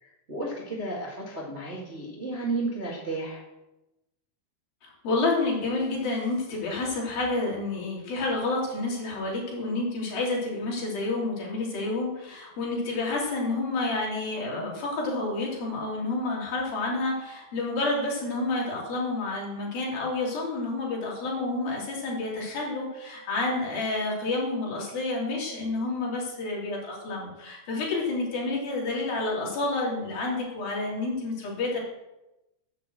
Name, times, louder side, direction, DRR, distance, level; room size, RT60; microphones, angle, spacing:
voice 1, 0.0-3.4, right 2 dB, 70° right, -4 dB, 0.6 m, -33 dB
voice 2, 4.8-31.8, left 2 dB, 50° left, -3 dB, 4.5 m, -29 dB
10.5 x 7.9 x 7.8 m, 0.96 s
omnidirectional pair, 5.7 m